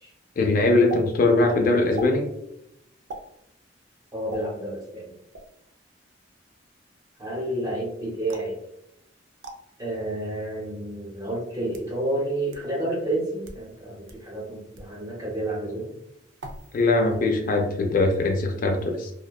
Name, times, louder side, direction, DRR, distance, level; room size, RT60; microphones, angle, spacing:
voice 1, 0.4-2.3 16.7-19.1, left 2 dB, 45° left, 3 dB, 0.3 m, -21 dB
sound 1, 0.9-1.0 1.9-2.2 3.1-3.3 4.3-4.4 5.3-5.6 8.3-8.6 9.4-9.6 10.5-10.6 11.5-11.9 12.5-12.6 13.3-13.6 14.1-14.2 14.7-14.9 16.4-16.8 17.1-17.5, right 1 dB, 80° right, 0.4 m, -39 dB
voice 2, 4.1-5.1 7.2-8.6 9.8-15.9, right 1 dB, 20° right, -4 dB, 0.8 m, -30 dB
2.6 x 2.2 x 2.2 m, 0.79 s
head